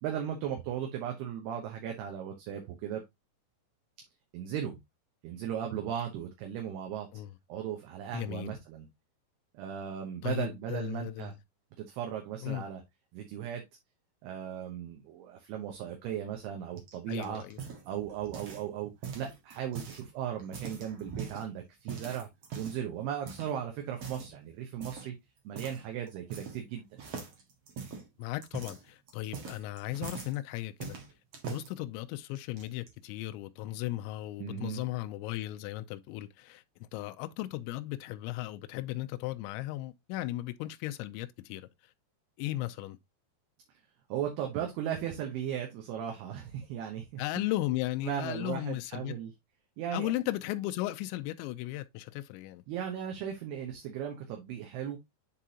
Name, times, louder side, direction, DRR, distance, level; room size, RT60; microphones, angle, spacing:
voice 1, 0.0-3.0 4.3-4.8 5.2-7.1 7.5-8.9 9.5-11.3 11.8-12.8 13.1-13.6 14.2-17.4 17.9-22.3 22.5-25.2 25.4-27.0 34.4-34.8 44.1-47.2 48.0-49.3 49.8-50.1 52.7-55.0, right 9 dB, 75° right, 2.7 m, -37 dB
voice 2, 8.1-8.5 10.2-11.4 12.4-12.6 17.1-17.6 28.2-31.0 31.5-41.7 42.4-43.0 47.2-49.2 49.9-52.6, left 16 dB, 85° left, 2.9 m, -36 dB
sound 1, 16.8-18.7 19.0-20.0 20.4-21.4 21.9-22.9 23.3-23.5 23.9-24.3 24.8-25.1 25.6-25.8 26.1-26.7 27.0-30.4 30.8-31.7 32.4-32.9, right 6 dB, 55° right, 1.8 m, -42 dB
10.0 x 3.7 x 2.8 m
omnidirectional pair, 5.3 m